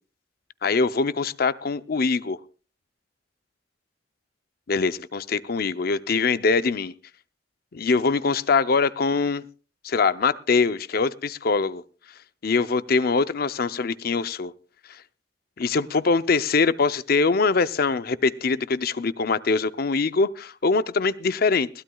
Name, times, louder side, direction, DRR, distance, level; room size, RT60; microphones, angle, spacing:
voice 1, 0.6-2.4 4.7-6.9 7.7-9.4 9.8-11.8 12.4-14.5 14.9-15.0 15.6-21.7, left 4 dB, 55° left, 14 dB, 0.6 m, -23 dB
21.0 x 16.0 x 2.3 m, 0.35 s
head